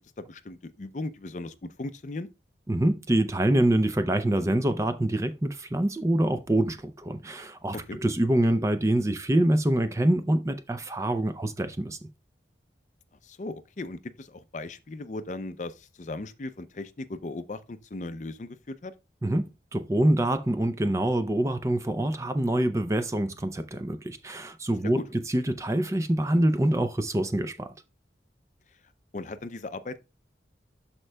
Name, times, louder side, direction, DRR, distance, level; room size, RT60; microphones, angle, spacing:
voice 1, 0.2-2.3 7.7-8.0 13.2-18.9 24.9-25.0 29.1-30.0, left 2 dB, 40° left, 0.5 m, -37 dB
voice 2, 2.7-12.0 19.2-25.0 25.3-27.7, right 1 dB, 15° right, 0.4 m, -25 dB
13.0 x 4.4 x 2.2 m
head